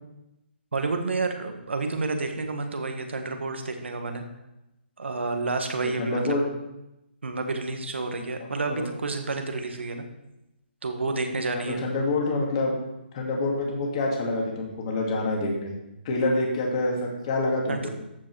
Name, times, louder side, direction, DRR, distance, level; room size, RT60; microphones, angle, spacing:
voice 1, 0.7-4.2 5.0-6.2 7.2-10.0 10.8-11.8 17.7-17.9, right 3 dB, 85° right, 5 dB, 1.7 m, -29 dB
voice 2, 6.0-6.4 8.7-8.8 11.5-12.8 13.1-15.7 16.0-17.9, left 2 dB, 30° left, -1 dB, 2.4 m, -26 dB
13.5 x 5.5 x 4.8 m, 0.92 s
hypercardioid pair, 160°, 6 cm